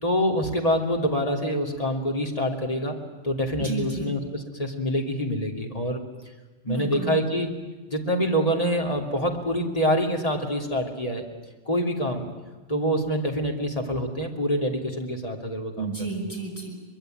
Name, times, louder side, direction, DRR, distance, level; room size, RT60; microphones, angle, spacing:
voice 1, 0.0-3.0 3.2-6.0 6.6-7.5 7.9-11.3 11.7-12.2 12.7-15.9, equal, 35° left, 1 dB, 3.0 m, -26 dB
voice 2, 3.6-4.1 6.7-7.2 15.8-16.7, right 5 dB, 15° left, 0 dB, 6.1 m, -31 dB
24.0 x 22.0 x 9.1 m, 1.2 s
omnidirectional pair, 1.1 m